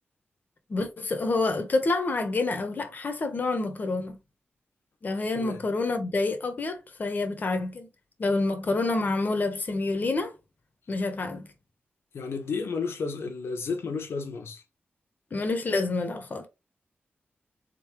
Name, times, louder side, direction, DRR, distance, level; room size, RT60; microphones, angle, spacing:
voice 1, 0.7-4.2 5.0-7.9 8.2-10.3 10.9-11.4 15.3-16.5, left 3 dB, 45° left, 1.1 m, -28 dB
voice 2, 12.1-14.6, left 4 dB, 75° left, 1.2 m, -32 dB
4.0 x 3.9 x 3.1 m
wide cardioid pair, 125°, 4 cm